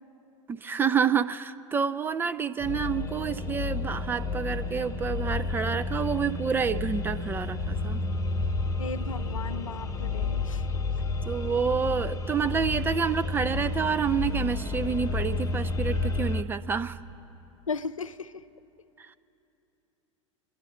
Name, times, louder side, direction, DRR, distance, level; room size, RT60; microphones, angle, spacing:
voice 1, 0.5-8.0 11.3-17.0 19.0-19.2, right 6 dB, 15° right, 10 dB, 0.3 m, -28 dB
sound 1, 2.6-16.4, left 3 dB, 20° left, 0.9 m, -31 dB
voice 2, 8.8-10.6 17.7-18.4, left 4 dB, 80° left, 13 dB, 0.5 m, -36 dB
27.5 x 10.5 x 4.1 m, 2.9 s
figure-of-eight pair, 85°, 17 cm